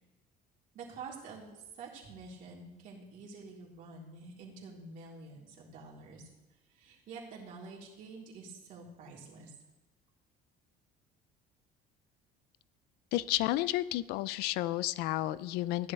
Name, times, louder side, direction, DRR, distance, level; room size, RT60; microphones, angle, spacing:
voice 1, 0.7-6.3 6.7-9.5, right 4 dB, 55° right, -4 dB, 3.6 m, -48 dB
voice 2, 13.1-15.9, left 16 dB, 75° left, 18 dB, 0.4 m, -31 dB
15.5 x 11.0 x 3.4 m, 0.99 s
cardioid pair, 155°, 17 cm